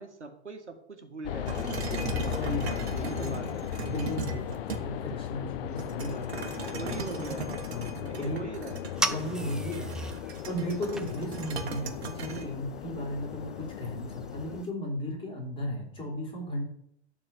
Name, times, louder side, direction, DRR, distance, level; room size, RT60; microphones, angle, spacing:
voice 1, 0.0-3.5 6.6-7.6 8.0-8.8, right 3 dB, 90° right, 5 dB, 1.7 m, -42 dB
sound 1, 1.2-14.6, left 13 dB, 55° left, 0.6 m, -37 dB
sound 2, 1.5-5.1 5.8-12.4, right 5 dB, 65° right, 1.6 m, -38 dB
voice 2, 2.4-3.4 3.9-7.0 7.7-8.5 9.1-16.6, left 1 dB, 15° left, -1 dB, 4.2 m, -35 dB
sound 3, 8.9-14.7, right 1 dB, ahead, 0.4 m, -38 dB
12.0 x 4.5 x 7.5 m, 0.71 s
figure-of-eight pair, 100°, 34 cm